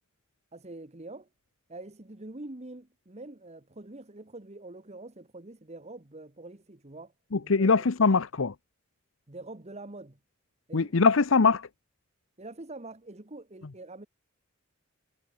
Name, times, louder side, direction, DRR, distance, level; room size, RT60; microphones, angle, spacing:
voice 1, 0.5-1.3 1.7-7.1 7.4-8.1 9.3-10.2 10.7-10.9 12.4-14.1, right 2 dB, 35° right, 1.5 m, -45 dB
voice 2, 7.3-8.5 10.7-11.7, left 4 dB, 80° left, 0.8 m, -22 dB
head